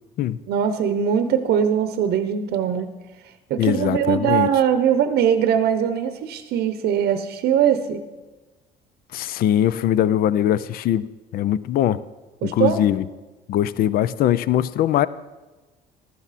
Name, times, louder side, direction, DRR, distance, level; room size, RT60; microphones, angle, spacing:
voice 1, 0.5-2.9 3.5-8.0 12.4-12.8, right 8 dB, 75° right, 9 dB, 0.8 m, -21 dB
voice 2, 3.6-4.5 9.1-11.1 11.3-12.0 12.4-13.1 13.5-15.1, left 11 dB, 60° left, 17 dB, 0.4 m, -21 dB
15.0 x 12.0 x 4.2 m, 1.2 s
cardioid pair, 110°, 17 cm